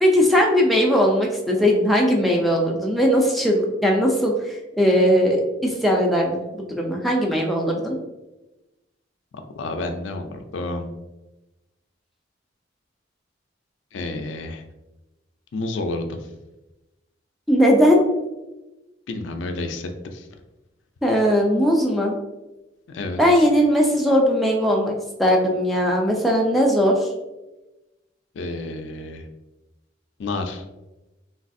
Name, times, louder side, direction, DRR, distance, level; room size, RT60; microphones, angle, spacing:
voice 1, 0.0-8.0 17.5-18.0 21.0-22.2 23.2-24.9 25.2-27.1, equal, ahead, -1 dB, 0.3 m, -19 dB
voice 2, 9.6-10.9 13.9-14.6 15.5-16.2 19.1-20.3 22.9-23.2 28.4-29.2 30.2-30.6, left 2 dB, 80° left, 5 dB, 0.4 m, -30 dB
3.3 x 2.3 x 2.5 m, 1.0 s
head